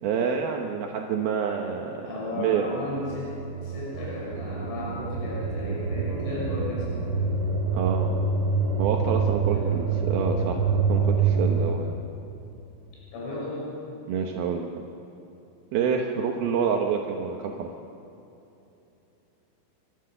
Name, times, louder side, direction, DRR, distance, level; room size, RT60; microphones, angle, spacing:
voice 1, 0.0-2.7 7.7-8.2 8.8-10.6 10.9-12.0 14.1-14.9 15.7-17.7, right 6 dB, 80° right, 2 dB, 2.2 m, -28 dB
voice 2, 2.1-3.3 3.6-7.1 9.5-9.7 13.1-13.8, left 1 dB, 75° left, -6 dB, 9.4 m, -34 dB
sound 1, 2.7-11.8, right 4 dB, 35° right, 2.1 m, -26 dB
29.5 x 14.0 x 6.8 m, 2.9 s
omnidirectional pair, 5.9 m